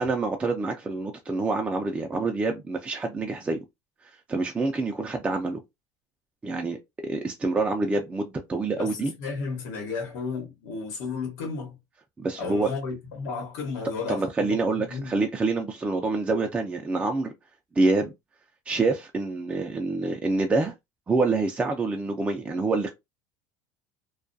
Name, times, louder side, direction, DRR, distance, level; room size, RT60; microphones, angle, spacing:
voice 1, 0.0-3.6 4.3-5.6 6.4-6.8 7.0-9.1 12.2-12.7 14.1-17.3 17.8-18.1 18.7-20.7 21.1-22.9, right 3 dB, 15° right, 0.4 m, -26 dB
voice 2, 8.8-11.8 12.4-15.1, left 4 dB, 85° left, 1.1 m, -33 dB
2.3 x 2.2 x 2.5 m
supercardioid pair, 115°, 9 cm